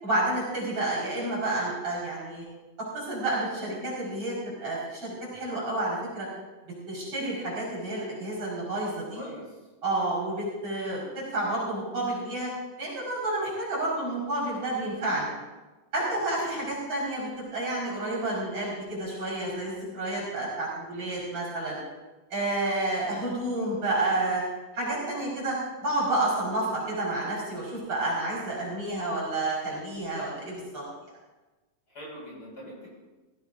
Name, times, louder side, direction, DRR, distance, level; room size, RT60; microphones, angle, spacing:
voice 1, 0.0-2.4 2.9-6.3 6.9-9.2 9.8-11.1 11.3-12.5 12.8-15.3 15.9-21.8 22.3-24.4 24.7-25.6 25.8-30.8, right 2 dB, 45° right, -6 dB, 5.5 m, -30 dB
voice 2, 9.2-9.6 16.4-16.6 31.9-32.9, equal, 30° left, -5 dB, 5.9 m, -42 dB
18.5 x 16.5 x 2.6 m, 1.2 s
omnidirectional pair, 3.6 m